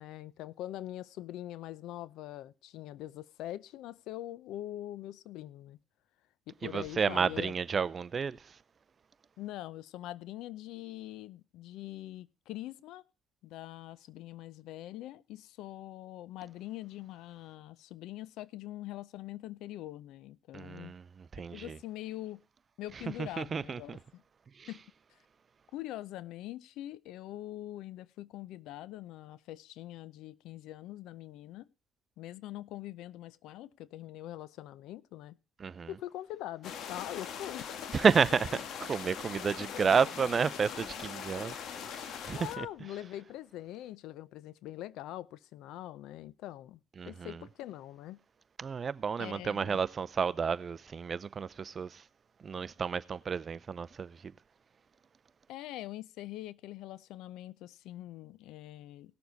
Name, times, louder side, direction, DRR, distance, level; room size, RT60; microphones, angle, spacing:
voice 1, 0.0-5.8 6.5-7.6 9.4-13.0 13.4-20.9 21.5-22.4 22.8-24.2 24.7-24.8 25.7-31.7 32.2-35.4 35.9-37.8 39.6-40.1 42.3-46.8 47.0-48.2 49.2-49.8 55.5-59.1, left 14 dB, 80° left, 0.6 m, -43 dB
voice 2, 6.6-8.4 20.5-21.8 23.2-24.0 24.6-24.7 35.6-35.9 37.9-38.5 38.8-41.5 42.0-42.7 47.0-47.4 48.6-52.0 52.4-54.3, right 6 dB, 40° right, 0.6 m, -31 dB
sound 1, 36.6-42.6, left 7 dB, 65° left, 1.5 m, -41 dB
17.5 x 7.0 x 3.9 m
cardioid pair, 95°, 0 cm